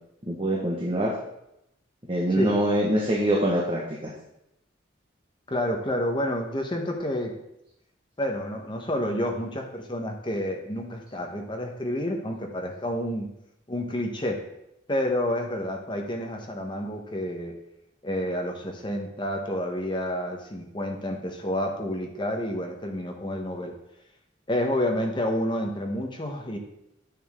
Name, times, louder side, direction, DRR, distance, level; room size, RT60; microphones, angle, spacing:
voice 1, 0.2-1.1 2.1-4.1, right 1 dB, 30° right, -3 dB, 1.2 m, -24 dB
voice 2, 5.5-7.4 8.2-13.3 13.7-14.4 14.9-17.5 18.0-23.7 24.5-26.6, left 1 dB, 25° left, 2 dB, 1.1 m, -29 dB
9.3 x 6.4 x 3.7 m, 0.83 s
head